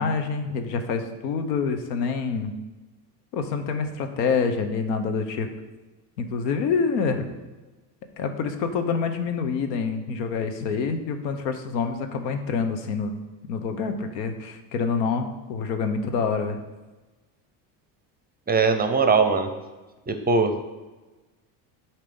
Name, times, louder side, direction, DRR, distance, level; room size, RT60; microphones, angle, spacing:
voice 1, 0.0-2.5 3.3-5.5 6.2-7.3 8.2-13.1 13.5-16.6, left 5 dB, 90° left, 7 dB, 0.9 m, -26 dB
voice 2, 18.5-19.5 20.1-20.6, right 4 dB, 20° right, 7 dB, 0.6 m, -21 dB
8.3 x 2.9 x 5.2 m, 1.2 s
supercardioid pair, 90°, 49 cm